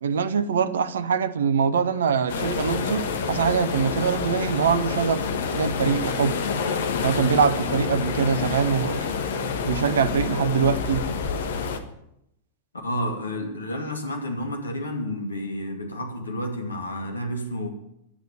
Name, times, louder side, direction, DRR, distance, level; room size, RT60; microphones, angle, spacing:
voice 1, 0.0-6.4 7.0-9.1 9.6-11.0, right 6 dB, 65° right, 0.9 m, -23 dB
sound 1, 2.3-11.8, left 5 dB, 60° left, 1.4 m, -28 dB
voice 2, 12.8-17.7, left 1 dB, 75° left, 2.5 m, -30 dB
11.5 x 9.3 x 9.4 m
figure-of-eight pair, 90°, 0 cm